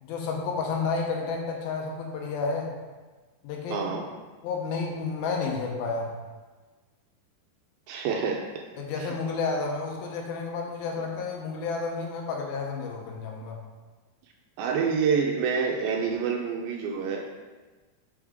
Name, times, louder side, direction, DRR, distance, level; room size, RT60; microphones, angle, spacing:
voice 1, 0.0-2.7 3.4-4.0 4.4-6.1 8.8-13.6, left 4 dB, 75° left, 1 dB, 2.5 m, -31 dB
voice 2, 3.7-4.1 7.9-8.6 9.0-9.2 11.0-11.1 14.6-17.4, right 6 dB, 80° right, 1 dB, 2.3 m, -27 dB
7.1 x 6.2 x 3.5 m, 1.3 s
omnidirectional pair, 4.6 m